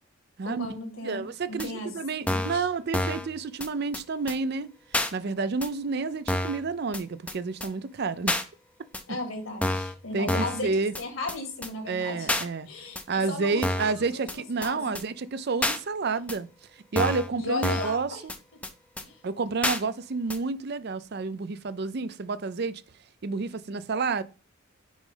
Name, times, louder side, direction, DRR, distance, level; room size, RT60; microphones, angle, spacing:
voice 1, 0.4-2.7 9.1-12.3 12.7-13.0 13.3-14.9 17.4-18.2 19.0-19.2, left 2 dB, 70° left, 2.3 m, -36 dB
voice 2, 1.0-4.7 5.1-8.3 10.1-10.9 11.9-12.7 13.1-16.5 16.9-18.2 19.2-22.8 23.2-24.2, right 4 dB, 50° right, 0.5 m, -30 dB
sound 1, 1.6-1.7 2.3-2.6 2.9-3.3 3.6-3.7 3.9-4.0 4.3-4.4 4.9-5.1 5.6-5.7 6.3-6.6 6.9-7.0 7.3-7.4 7.6-7.7 8.3-8.4 8.9-9.0 9.6-9.9 10.3-10.6 10.9-11.0 11.3-11.4 11.6-11.7 12.3-12.5 13.0-13.1 13.6-13.9 14.3-14.4 14.6-14.7 15.0-15.1 15.6-15.8 16.3-16.4 17.0-17.3 17.6-18.0 18.3-18.4 18.6-18.7 19.0-19.1 19.6-19.8 20.3-20.4, left 1 dB, 5° left, 0.5 m, -28 dB
6.2 x 5.1 x 3.8 m
head